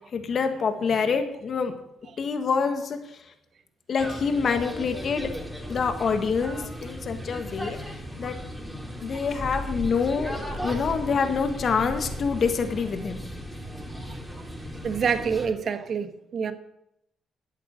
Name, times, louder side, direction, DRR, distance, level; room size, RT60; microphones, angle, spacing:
voice 1, 0.1-1.8 2.2-3.0 3.9-5.3 5.7-7.8 8.2-8.4 9.0-13.2, left 5 dB, 55° left, 1.5 m, -26 dB
sound 1, 4.0-15.5, equal, ahead, 4.5 m, -36 dB
voice 2, 14.8-16.5, right 6 dB, 60° right, 1.4 m, -27 dB
12.5 x 8.4 x 6.5 m
supercardioid pair, 60°, 0 cm